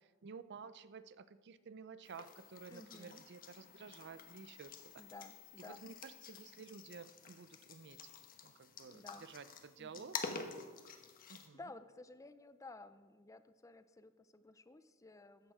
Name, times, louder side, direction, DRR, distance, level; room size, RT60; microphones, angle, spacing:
voice 1, 0.0-5.0 5.7-8.1 8.4-10.7 11.3-11.6, right 5 dB, 55° right, 15 dB, 0.5 m, -53 dB
sound 1, 2.0-11.5, left 5 dB, 45° left, 1.1 m, -49 dB
voice 2, 2.7-3.2 5.0-5.8 8.9-9.3 9.8-10.1 11.3-15.5, left 2 dB, 15° left, 12 dB, 0.5 m, -55 dB
14.0 x 9.0 x 4.8 m, 1.4 s
head